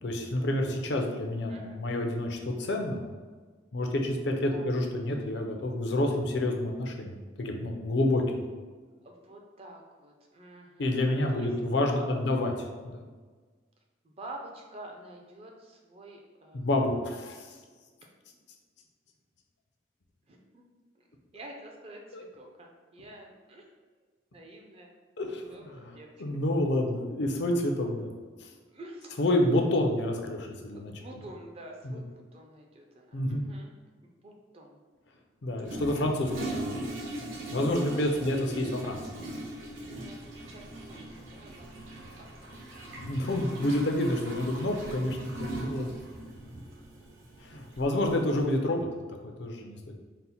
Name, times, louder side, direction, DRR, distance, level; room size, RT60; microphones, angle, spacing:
voice 1, 0.0-3.0 3.7-8.4 10.8-12.5 12.8-13.0 16.5-17.6 22.1-22.2 25.2-28.1 28.4-28.5 29.2-31.0 31.8-32.0 33.1-33.4 35.4-36.8 37.5-39.0 43.0-45.9 47.4-48.9 49.2-49.9, left 1 dB, 60° left, 3 dB, 0.5 m, -29 dB
voice 2, 9.0-11.0 11.3-11.7 14.2-16.7 20.3-20.6 21.0-21.1 21.3-23.6 24.3-24.9 25.5-26.1 28.7-29.1 30.7-33.7 34.0-34.8 35.7-36.4 37.7-38.3 39.9-41.7 42.0-42.5 42.8-43.5 44.3-44.4, right 1 dB, 30° right, 1 dB, 0.4 m, -48 dB
Toilet flush, 35.6-48.4, right 1 dB, 90° right, 0.8 m, -40 dB
4.1 x 2.1 x 4.1 m, 1.4 s
head